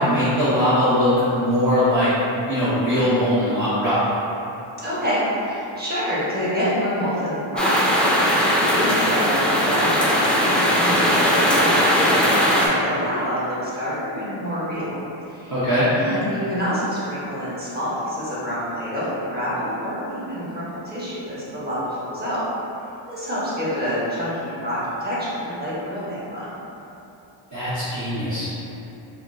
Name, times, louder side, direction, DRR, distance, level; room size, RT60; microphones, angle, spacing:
voice 1, 0.0-2.1 2.5-4.0 15.5-15.9 27.5-28.5, equal, 35° right, -13 dB, 0.9 m, -20 dB
voice 2, 4.8-8.0 8.3-15.0 15.3-15.5 15.9-22.4 23.1-26.5, equal, 20° right, -10 dB, 1.2 m, -27 dB
sound 1, 7.6-12.7, equal, ahead, 0.4 m, -19 dB
4.1 x 2.1 x 2.6 m, 2.9 s
cardioid pair, 80°, 48 cm